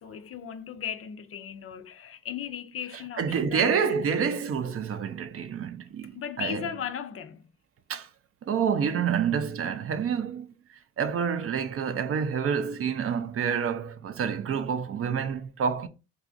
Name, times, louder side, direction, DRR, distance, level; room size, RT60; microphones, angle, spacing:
voice 1, 0.0-4.0 6.1-7.5, left 8 dB, 50° left, 0.5 m, -37 dB
voice 2, 3.2-6.7 7.9-8.1 8.4-15.9, right 7 dB, 50° right, 0.5 m, -28 dB
4.8 x 2.4 x 2.5 m
cardioid pair, 90°, 30 cm